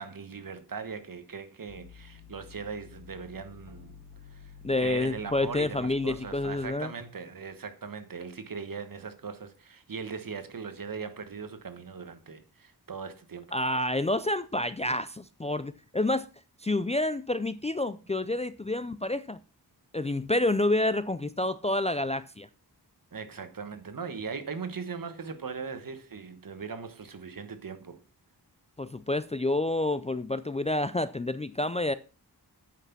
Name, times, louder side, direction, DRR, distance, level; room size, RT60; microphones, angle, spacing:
voice 1, 0.0-4.0 4.3-4.5 4.8-13.6 23.1-28.0, right 5 dB, 55° right, 1.3 m, -39 dB
sound 1, 1.7-6.7, left 6 dB, 90° left, 3.7 m, -50 dB
voice 2, 4.6-6.9 13.5-16.3 16.6-19.4 19.9-22.5 28.8-31.9, left 2 dB, 15° left, 0.4 m, -28 dB
9.2 x 5.9 x 5.9 m
wide cardioid pair, 100°, 40 cm